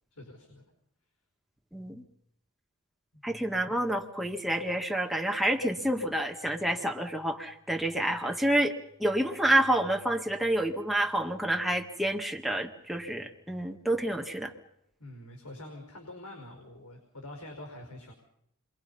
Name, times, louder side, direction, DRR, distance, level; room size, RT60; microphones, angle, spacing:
voice 1, 0.1-0.7 15.0-18.1, left 1 dB, 85° left, 2 dB, 5.1 m, -45 dB
voice 2, 1.7-2.0 3.2-8.7 9.0-14.5, right 1 dB, ahead, 1 dB, 2.0 m, -28 dB
29.5 x 23.5 x 5.6 m, 0.75 s
head